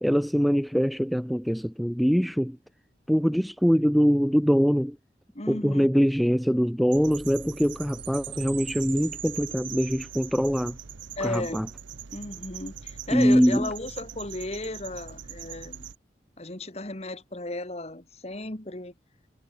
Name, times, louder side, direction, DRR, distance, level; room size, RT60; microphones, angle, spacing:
voice 1, 0.0-2.6 3.1-5.0 5.5-10.8 11.2-11.7 13.1-13.7, equal, ahead, 0.5 m, -23 dB
voice 2, 5.3-5.9 11.2-11.7 12.1-15.8 16.4-18.9, left 2 dB, 35° left, 1.8 m, -34 dB
sound 1, 6.9-16.0, right 8 dB, 85° right, 0.8 m, -43 dB
Chime, 7.1-10.8, right 10 dB, 30° right, 0.8 m, -42 dB
head